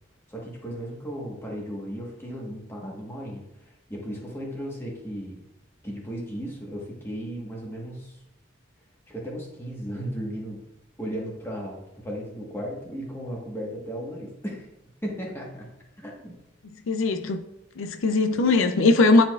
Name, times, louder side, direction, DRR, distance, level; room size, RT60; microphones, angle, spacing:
voice 1, 0.3-5.4 5.8-8.2 9.1-10.6 11.0-14.7 15.0-15.7 16.0-16.4, equal, 10° left, -2 dB, 1.2 m, -35 dB
voice 2, 16.9-17.4 17.8-19.3, left 3 dB, 90° left, 7 dB, 0.5 m, -20 dB
9.6 x 4.2 x 2.4 m, 0.85 s
head